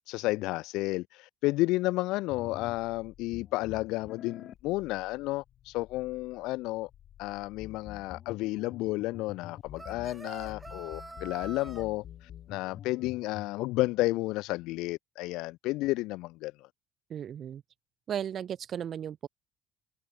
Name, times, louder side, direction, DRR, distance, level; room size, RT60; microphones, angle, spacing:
voice 1, 0.1-6.9 7.2-16.7, left 20 dB, 75° left, 0.5 m, -32 dB
sound 1, 2.3-13.6, left 11 dB, 55° left, 3.6 m, -48 dB
sound 2, 9.8-11.9, right 2 dB, 15° right, 4.8 m, -45 dB
voice 2, 17.1-17.6 18.1-19.3, right 9 dB, 50° right, 4.5 m, -35 dB
supercardioid pair, 95°, 0 cm